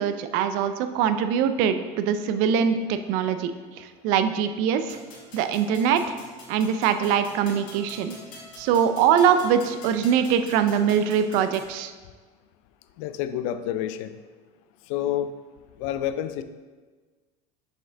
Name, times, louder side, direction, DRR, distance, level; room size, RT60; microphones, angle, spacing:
voice 1, 0.0-3.5 3.8-5.0 5.3-6.1 6.5-8.2 8.6-11.9, right 8 dB, 60° right, 9 dB, 0.4 m, -23 dB
sound 1, 4.9-11.7, left 2 dB, 55° left, 1.9 m, -46 dB
voice 2, 13.0-14.1 14.9-15.3 15.8-16.4, left 11 dB, 75° left, 10 dB, 0.4 m, -28 dB
5.9 x 5.1 x 3.3 m, 1.4 s
cardioid pair, 165°, 17 cm